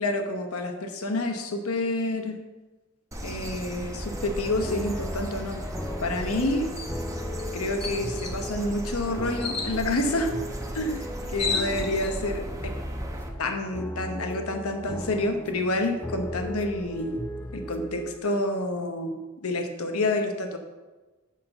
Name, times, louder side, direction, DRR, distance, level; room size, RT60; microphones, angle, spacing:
voice 1, 0.0-2.4 3.2-5.6 6.0-6.7 7.5-10.3 10.7-12.7 13.4-17.2 17.5-20.6, left 2 dB, 75° left, 5 dB, 1.0 m, -28 dB
sound 1, 3.1-13.3, right 1 dB, 15° right, 0.8 m, -36 dB
sound 2, 4.1-18.2, equal, 10° left, 0.4 m, -37 dB
sound 3, 6.8-7.0 7.4-7.5 7.8-8.3 9.4-9.7 10.9-11.0 11.2-12.1, left 4 dB, 25° left, 1.2 m, -31 dB
6.5 x 5.7 x 6.8 m, 1.2 s
head